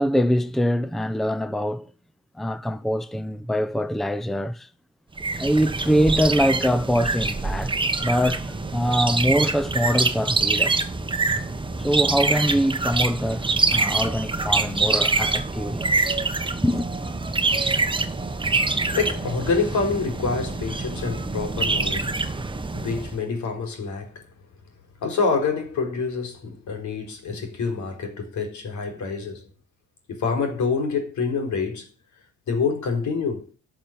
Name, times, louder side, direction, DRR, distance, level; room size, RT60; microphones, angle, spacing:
voice 1, 0.0-1.9 2.4-4.7 5.4-7.7 8.0-10.8 11.8-15.9 16.6-16.9, equal, ahead, 0.7 m, -23 dB
sound 1, 5.2-23.2, right 3 dB, 15° right, 1.2 m, -25 dB
voice 2, 18.9-22.1 22.7-24.2 25.0-29.5 30.1-31.9 32.5-33.5, left 4 dB, 70° left, 4.4 m, -26 dB
12.0 x 6.1 x 8.8 m
cardioid pair, 90°, 30 cm